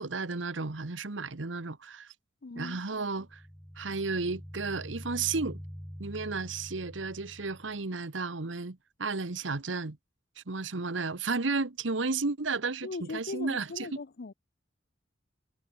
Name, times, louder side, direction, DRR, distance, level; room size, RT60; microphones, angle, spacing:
voice 1, 0.0-2.1 2.5-3.4 3.8-5.6 6.0-10.0 10.4-13.9, right 4 dB, 75° right, 1.2 m, -33 dB
voice 2, 2.4-2.8 12.8-14.3, left 3 dB, 55° left, 0.6 m, -39 dB
sound 1, 3.1-7.8, equal, 5° left, 1.8 m, -45 dB
head